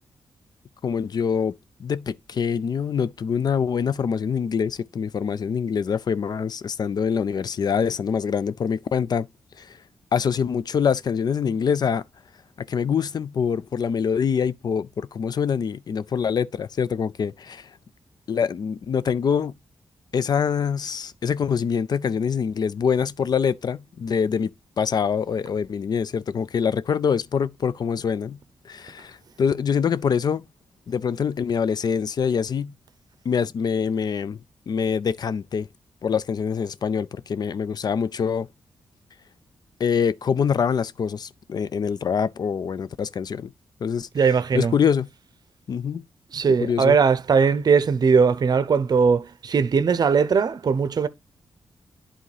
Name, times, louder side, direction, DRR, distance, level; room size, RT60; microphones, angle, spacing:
voice 1, 0.8-1.5 1.8-9.3 9.6-9.8 10.1-12.0 12.6-17.7 18.3-19.5 20.1-24.5 24.8-28.4 28.6-30.4 30.9-32.7 33.2-34.4 34.7-35.7 36.0-38.5 39.8-43.5 43.8-44.1 44.5-45.1 45.7-46.0 46.6-47.0, left 7 dB, 55° left, 0.4 m, -24 dB
voice 2, 44.1-44.7 46.3-51.1, right 5 dB, 50° right, 0.6 m, -19 dB
11.0 x 3.7 x 3.2 m
cardioid pair, 95°, 9 cm